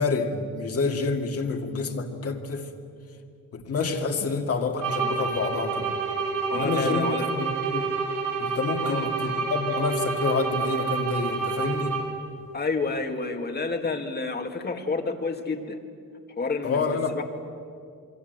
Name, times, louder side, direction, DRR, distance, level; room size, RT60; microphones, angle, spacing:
voice 1, 0.0-2.7 3.5-5.9 6.5-7.9 8.4-12.0 16.6-17.2, left 4 dB, 45° left, 3 dB, 2.4 m, -28 dB
sound 1, 4.8-12.3, right 5 dB, 75° right, 6.3 m, -28 dB
voice 2, 6.5-7.3 8.8-9.3 12.5-15.8 16.4-17.2, left 3 dB, 30° left, 4 dB, 2.1 m, -30 dB
27.0 x 23.0 x 8.1 m, 2.3 s
wide cardioid pair, 165°, 32 cm